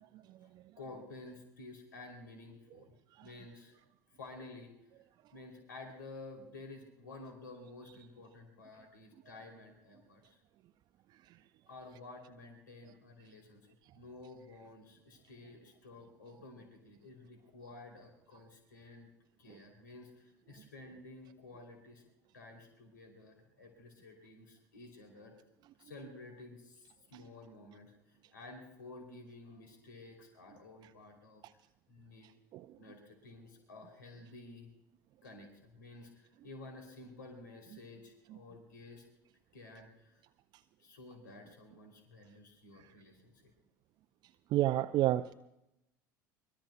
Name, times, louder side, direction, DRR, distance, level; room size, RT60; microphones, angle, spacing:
voice 1, 0.4-2.9 3.2-4.9 5.3-10.4 11.7-19.1 19.4-22.0 22.3-25.3 25.8-31.4 31.9-32.3 32.8-34.7 35.2-39.0 39.5-40.2 40.8-43.5, left 2 dB, 75° left, 2 dB, 3.0 m, -52 dB
voice 2, 44.5-45.3, right 14 dB, 45° right, 10 dB, 0.5 m, -28 dB
24.0 x 22.0 x 2.3 m, 0.88 s
figure-of-eight pair, 70°, 10 cm